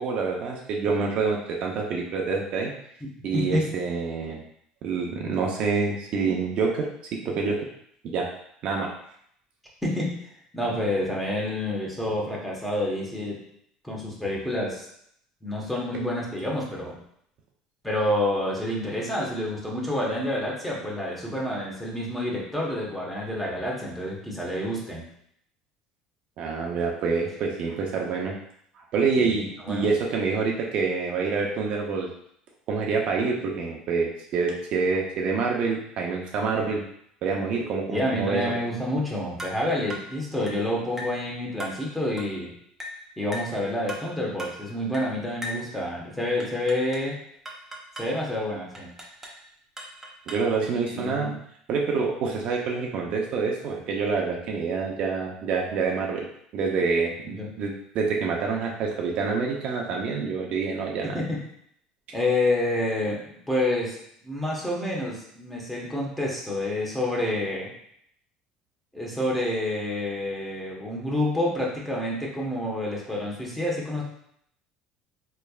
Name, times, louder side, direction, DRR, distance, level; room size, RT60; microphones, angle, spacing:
voice 1, 0.0-2.7 3.2-4.4 4.8-6.9 7.2-7.6 8.0-8.3 8.6-8.9 26.4-28.3 28.8-32.1 32.7-36.8 37.2-38.5 50.3-51.4 51.7-56.3 56.5-61.2, right 4 dB, 55° right, -1 dB, 0.6 m, -27 dB
voice 2, 3.3-3.7 9.8-10.2 10.5-13.4 13.8-14.9 15.4-17.0 17.8-25.0 29.2-29.3 29.6-29.9 37.9-42.5 43.2-47.2 48.0-48.9 50.9-51.3 57.4-57.5 61.0-61.4 62.1-64.0 64.2-67.7 68.9-74.0, left 1 dB, 5° left, -4 dB, 1.1 m, -28 dB
sound 1, 39.4-39.6 39.9-40.1 40.5-40.6 41.0-41.2 41.6-41.8 42.2-42.3 42.8-43.0 43.3-43.6 43.9-44.1 44.4-44.6 44.9-45.1 45.4-45.7 46.4-47.1 47.4-48.1 48.7-49.4 49.8-50.5, equal, 15° right, 0.8 m, -38 dB
4.0 x 3.3 x 2.3 m, 0.70 s
supercardioid pair, 115°, 2 cm